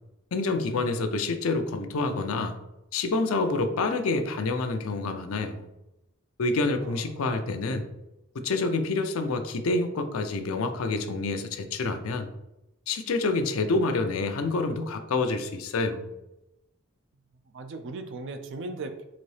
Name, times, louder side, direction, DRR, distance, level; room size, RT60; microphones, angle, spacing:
voice 1, 0.3-2.5 2.9-5.7 6.4-7.9 8.3-12.3 12.9-16.1, left 3 dB, 75° left, 7 dB, 0.5 m, -27 dB
voice 2, 6.8-7.1 17.5-19.0, right 3 dB, 60° right, 7 dB, 0.4 m, -38 dB
4.0 x 2.7 x 3.2 m, 0.91 s
head